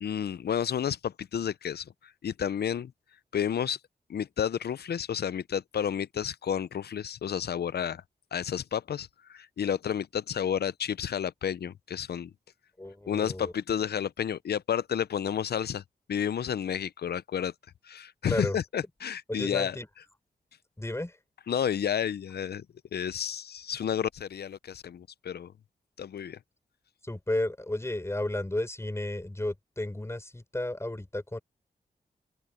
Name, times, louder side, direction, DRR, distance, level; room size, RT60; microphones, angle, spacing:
voice 1, 0.0-2.9 3.3-3.8 4.1-8.0 8.3-12.3 13.1-15.8 16.1-17.5 17.8-19.8 21.5-22.7 22.9-25.5 26.0-26.4, left 8 dB, 75° left, 0.6 m, -31 dB
voice 2, 12.8-13.5 18.2-18.6 19.3-19.9 20.8-21.2 27.0-31.4, left 1 dB, 15° left, 4.5 m, -33 dB
open air
cardioid pair, 70°, 17 cm